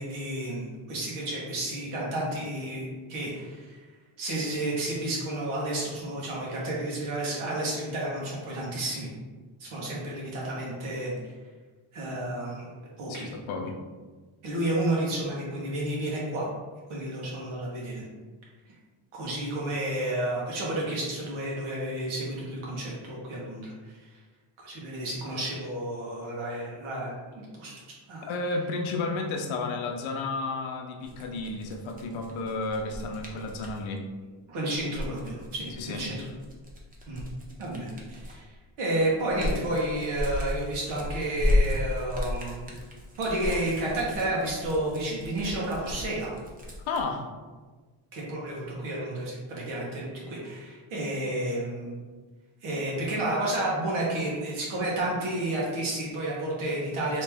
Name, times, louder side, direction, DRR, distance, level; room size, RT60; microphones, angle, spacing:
voice 1, 0.0-3.8 4.2-9.1 9.6-11.1 11.9-12.6 13.0-13.3 14.4-16.5 16.9-18.0 19.1-24.2 24.6-27.7 28.1-28.3 34.5-36.2 37.1-37.2 37.6-42.7 43.2-46.3 48.1-52.0 52.6-57.2, right 1 dB, 85° right, -4 dB, 1.2 m, -31 dB
voice 2, 13.1-13.8 28.3-34.1 35.8-36.0 46.9-47.3, left 3 dB, 75° left, 3 dB, 0.7 m, -32 dB
sound 1, 31.0-33.8 34.7-38.5 38.9-47.0, left 1 dB, 20° right, 0.4 m, -33 dB
3.1 x 2.9 x 3.4 m, 1.4 s
cardioid pair, 160°, 48 cm